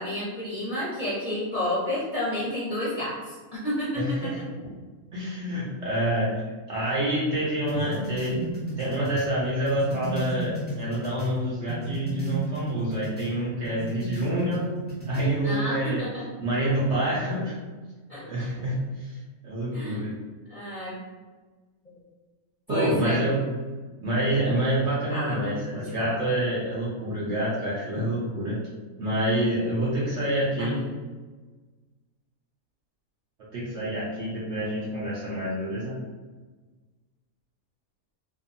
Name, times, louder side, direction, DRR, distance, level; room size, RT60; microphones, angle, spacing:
voice 1, 0.0-4.4 15.4-16.2 18.1-18.2 19.7-20.0 20.5-21.0 22.7-23.2 25.1-26.1 30.6-30.9, left 1 dB, 40° left, -11 dB, 0.8 m, -31 dB
voice 2, 4.0-4.4 5.1-6.3 6.7-8.4 8.8-14.8 15.1-16.0 16.4-17.5 18.2-19.2 19.4-20.1 22.7-23.4 24.0-28.6 29.0-30.8 33.5-36.0, right 1 dB, 65° right, -6 dB, 0.7 m, -27 dB
sound 1, 7.7-11.4 11.7-13.3 13.6-15.3, right 2 dB, 15° right, 0.3 m, -34 dB
2.6 x 2.3 x 2.5 m, 1.3 s
omnidirectional pair, 1.5 m